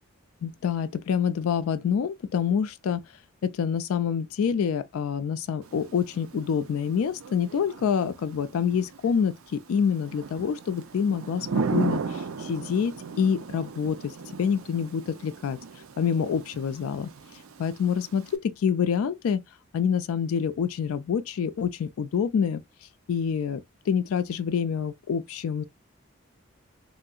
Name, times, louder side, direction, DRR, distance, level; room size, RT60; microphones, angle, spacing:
voice 1, 0.4-3.0 3.4-15.6 16.0-17.1 17.6-19.4 19.7-22.6 23.1-25.6, left 7 dB, 85° left, 0.3 m, -27 dB
Thunder / Rain, 5.6-18.4, right 4 dB, 80° right, 0.5 m, -36 dB
3.1 x 2.7 x 2.3 m
head